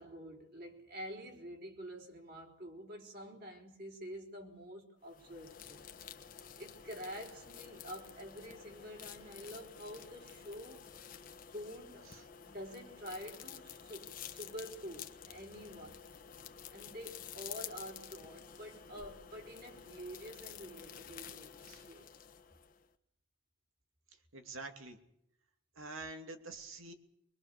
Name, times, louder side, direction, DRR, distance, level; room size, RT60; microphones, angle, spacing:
voice 1, 0.0-5.9 6.6-10.9 11.5-12.1 12.4-16.1 16.7-21.6 21.9-22.1, equal, 50° right, 4.1 m, -48 dB
sound 1, 5.0-22.9, left 8 dB, 45° left, 1.3 m, -51 dB
voice 2, 24.3-25.0 25.8-26.9, right 3 dB, 90° right, 2.7 m, -46 dB
24.0 x 22.0 x 6.8 m
head